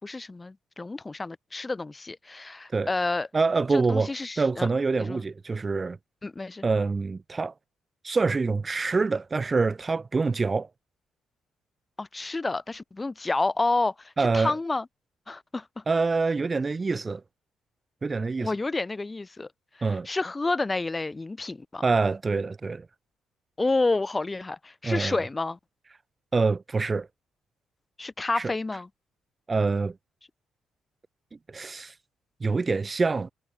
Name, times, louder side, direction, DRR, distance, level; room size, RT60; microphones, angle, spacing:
voice 1, 0.0-3.3 3.7-4.7 5.0-5.2 6.2-6.6 12.0-14.8 15.3-15.8 18.4-19.5 19.8-21.8 23.6-25.6 28.0-28.9, left 3 dB, 20° left, 2.5 m, -29 dB
voice 2, 3.3-4.1 4.4-6.0 6.6-7.5 8.0-10.7 14.2-14.6 15.9-17.2 18.0-18.5 19.8-20.1 21.8-22.9 24.8-25.2 26.3-27.1 28.3-28.5 29.5-29.9 31.5-31.9 32.4-33.3, right 4 dB, 30° right, 2.5 m, -25 dB
cardioid pair, 90°, 0 cm